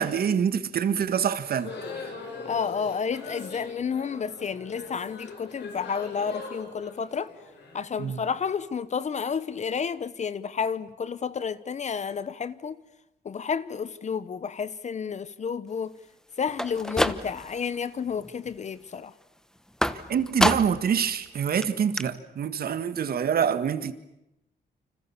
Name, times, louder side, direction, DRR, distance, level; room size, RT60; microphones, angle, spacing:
voice 1, 0.0-1.7 8.0-8.2 20.1-23.9, right 7 dB, 60° right, 1.7 m, -26 dB
sound 1, 1.4-8.4, left 4 dB, 90° left, 7.8 m, -41 dB
voice 2, 2.4-7.3 7.7-12.8 13.2-15.9 16.4-19.1, left 6 dB, 45° left, 0.9 m, -31 dB
sound 2, 16.5-17.6 18.0-18.5 19.8-20.9 21.3-21.4 21.6-21.7 22.0-22.1, equal, 5° left, 1.1 m, -27 dB
29.5 x 26.0 x 7.2 m
cardioid pair, 125°, 17 cm